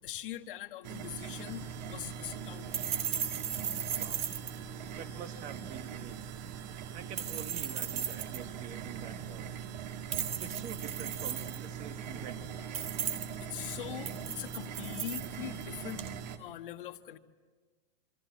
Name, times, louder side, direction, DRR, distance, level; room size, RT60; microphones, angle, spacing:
voice 1, 0.0-2.7 13.4-17.2, left 13 dB, 60° left, 6 dB, 1.6 m, -42 dB
sound 1, 0.8-16.4, right 8 dB, 45° right, 1.8 m, -42 dB
sound 2, 1.1-16.2, right 8 dB, 80° right, 3.2 m, -39 dB
voice 2, 5.0-6.4 6.9-9.5 10.4-12.9, right 7 dB, 25° right, 8 dB, 1.5 m, -46 dB
28.0 x 24.0 x 8.4 m, 1.4 s
supercardioid pair, 160°, 29 cm